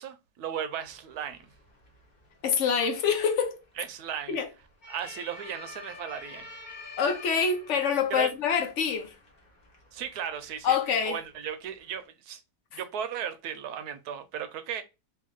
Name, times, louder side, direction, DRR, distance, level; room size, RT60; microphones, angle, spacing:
voice 1, 0.0-1.4 3.8-4.4 4.9-6.5 8.1-8.3 9.9-10.8 11.0-12.4 12.7-14.8, right 8 dB, 75° right, 1.1 m, -36 dB
sound 1, 0.8-12.1, left 3 dB, 35° left, 0.9 m, -50 dB
voice 2, 2.4-3.6 4.3-4.5 7.0-9.1 10.6-11.2, left 6 dB, 60° left, 0.8 m, -26 dB
2.9 x 2.7 x 3.7 m
omnidirectional pair, 1.8 m